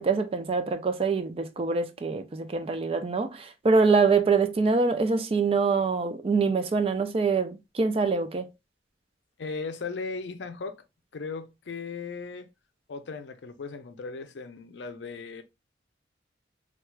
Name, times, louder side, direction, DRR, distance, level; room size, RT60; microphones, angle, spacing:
voice 1, 0.0-8.5, right 4 dB, 30° right, 0.3 m, -25 dB
voice 2, 9.4-10.8 11.1-12.5 12.9-15.4, left 4 dB, 70° left, 0.5 m, -37 dB
4.3 x 2.3 x 2.2 m
head